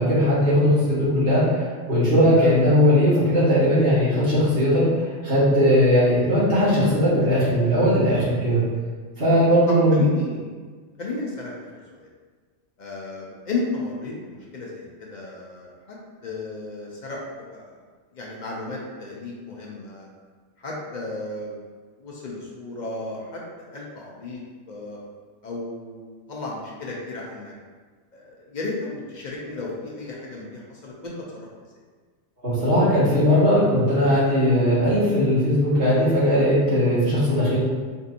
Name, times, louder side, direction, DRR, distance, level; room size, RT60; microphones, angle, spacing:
voice 1, 0.0-4.8 5.2-8.6 9.2-10.0 32.4-37.6, equal, 50° right, -13 dB, 1.8 m, -19 dB
voice 2, 9.7-10.5 11.0-11.7 11.9-12.1 12.8-17.8 18.1-20.1 20.6-21.6 22.0-25.0 25.4-27.5 28.1-31.5, left 2 dB, 50° left, -3 dB, 0.6 m, -34 dB
4.4 x 2.7 x 2.5 m, 1.5 s
omnidirectional pair, 1.3 m